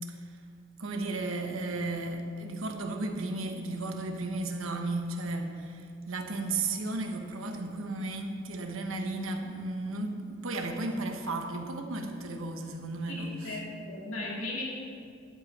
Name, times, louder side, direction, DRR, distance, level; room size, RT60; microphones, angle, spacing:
voice 1, 0.8-13.6, right 2 dB, 80° right, 4 dB, 1.1 m, -34 dB
voice 2, 13.1-14.6, left 2 dB, 80° left, -4 dB, 2.6 m, -37 dB
11.0 x 8.0 x 4.7 m, 2.3 s
head